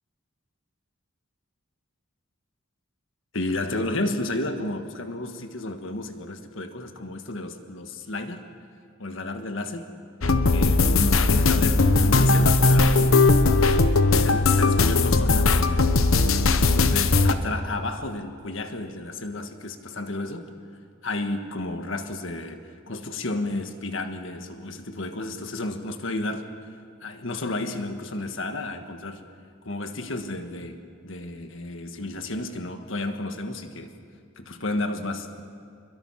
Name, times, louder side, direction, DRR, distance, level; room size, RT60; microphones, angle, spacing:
voice 1, 3.3-8.4 9.0-9.9 10.5-13.2 14.2-16.1 16.7-20.5 21.0-26.5 27.0-29.2 29.6-33.9 34.4-35.4, left 2 dB, 70° left, 7 dB, 1.6 m, -32 dB
sound 1, 10.2-17.3, left 3 dB, 85° left, 1.0 m, -19 dB
27.0 x 22.5 x 5.8 m, 2.3 s
head